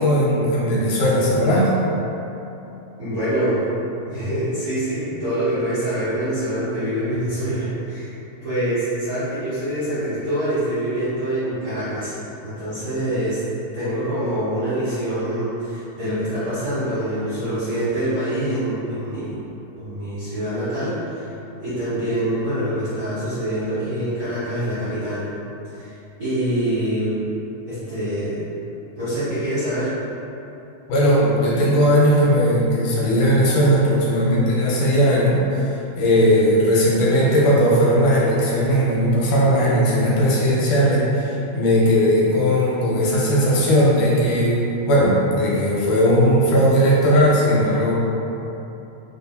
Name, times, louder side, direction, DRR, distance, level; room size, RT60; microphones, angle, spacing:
voice 1, 0.0-1.7 30.9-47.9, equal, 85° left, -6 dB, 2.3 m, -18 dB
voice 2, 3.0-3.6 4.0-8.1 8.4-12.1 12.4-13.4 13.7-19.4 19.8-21.3 21.6-25.3 25.7-27.2 27.7-28.5 29.0-29.9, right 1 dB, 45° right, -15 dB, 1.3 m, -25 dB
6.0 x 2.8 x 2.2 m, 3.0 s
omnidirectional pair, 3.4 m